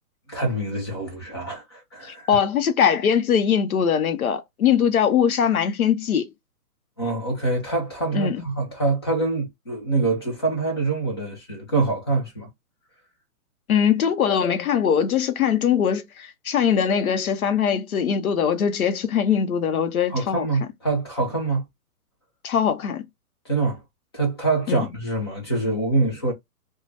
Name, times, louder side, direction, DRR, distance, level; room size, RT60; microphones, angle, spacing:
voice 1, 0.3-2.3 7.0-12.5 20.1-21.6 23.4-23.8 24.1-26.3, right 3 dB, 15° left, 0.6 m, -25 dB
voice 2, 2.0-6.3 8.1-8.4 13.7-20.5 22.4-23.1 24.7-24.9, left 8 dB, 65° left, 0.8 m, -21 dB
2.6 x 2.3 x 3.1 m
hypercardioid pair, 165°, 46 cm